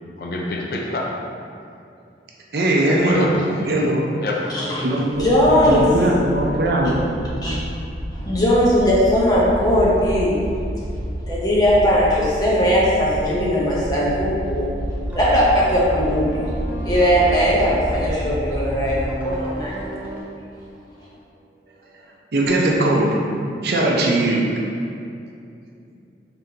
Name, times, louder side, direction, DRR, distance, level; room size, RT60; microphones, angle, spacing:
voice 1, 0.2-1.1 3.0-3.8 4.2-4.6, left 1 dB, 55° left, 0.5 m, -27 dB
voice 2, 2.5-3.3 3.6-4.0 4.8-5.3 5.6-7.2 22.3-23.2 23.6-24.4, right 1 dB, 60° right, 0.5 m, -19 dB
sound 1, 5.1-19.0, equal, 85° right, 0.9 m, -29 dB
voice 3, 5.2-5.9 7.4-7.6 8.1-10.3 11.3-14.7 15.1-16.5 16.8-19.7, equal, 20° left, 0.7 m, -18 dB
sound 2, 15.1-20.2, right 1 dB, 10° right, 0.4 m, -34 dB
3.7 x 3.6 x 2.8 m
head